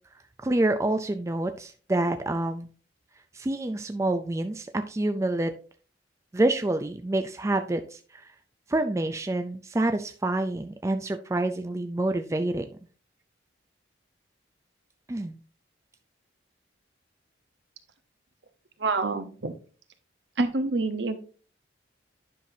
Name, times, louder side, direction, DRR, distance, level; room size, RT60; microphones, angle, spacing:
voice 1, 0.4-2.7 3.3-5.5 6.3-8.3 8.7-12.7 15.1-15.4, right 2 dB, 15° right, 7 dB, 0.3 m, -27 dB
voice 2, 18.8-19.5 20.4-21.2, right 3 dB, 65° right, 9 dB, 0.9 m, -27 dB
10.0 x 5.8 x 2.7 m, 0.39 s
head